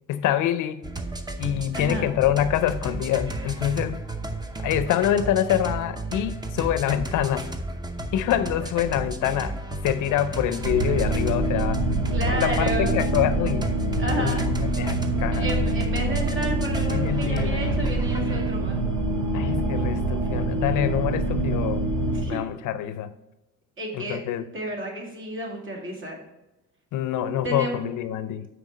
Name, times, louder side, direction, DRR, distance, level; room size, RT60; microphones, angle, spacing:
voice 1, 0.1-0.8 1.4-4.0 4.6-7.5 8.1-11.9 12.3-13.7 14.2-15.5 16.9-17.6 19.3-21.9 22.2-23.1 23.9-24.4 26.9-28.5, left 11 dB, 80° left, 0.5 m, -26 dB
sound 1, 0.8-18.7, right 2 dB, 15° right, 0.7 m, -33 dB
voice 2, 1.7-2.1 12.1-13.0 14.0-14.5 15.3-18.8 22.1-22.4 23.8-24.2 24.5-26.2 27.4-27.8, right 1 dB, 40° right, 2.2 m, -31 dB
sound 2, 10.6-22.3, right 2 dB, 85° right, 1.0 m, -25 dB
6.1 x 4.6 x 5.3 m
cardioid pair, 90°, 30 cm